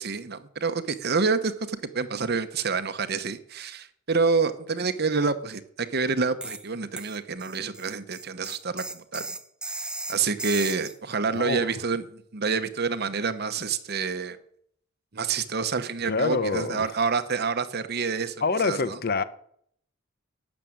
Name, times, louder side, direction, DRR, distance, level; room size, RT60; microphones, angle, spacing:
voice 1, 0.0-9.3 9.7-14.4 15.1-18.4 18.6-19.0, right 4 dB, 50° right, 1.0 m, -28 dB
sound 1, 6.4-6.7 7.0-11.0, right 2 dB, 5° right, 0.6 m, -36 dB
voice 2, 11.3-11.7 16.1-16.9 18.4-19.2, left 4 dB, 50° left, 0.8 m, -26 dB
12.5 x 7.5 x 8.8 m
head